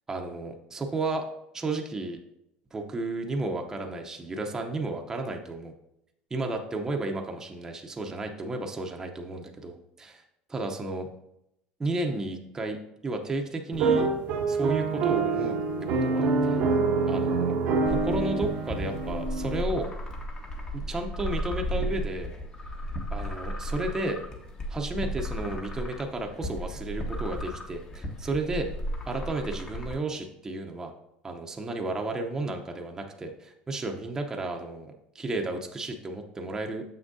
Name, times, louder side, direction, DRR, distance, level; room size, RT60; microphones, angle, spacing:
voice 1, 0.1-1.3 1.5-2.2 2.7-5.7 6.3-10.1 10.5-11.1 11.8-14.1 14.5-15.6 16.0-16.6 17.1-17.6 17.8-19.9 20.7-22.3 23.1-24.2 24.7-28.7 29.1-30.9 31.2-36.8, right 2 dB, 15° right, 3 dB, 0.7 m, -33 dB
sound 1, 13.7-19.6, right 4 dB, 60° right, 0.7 m, -26 dB
sound 2, 17.9-29.9, equal, 30° left, 1.1 m, -34 dB
7.0 x 6.0 x 2.7 m, 0.80 s
supercardioid pair, 125°, 3 cm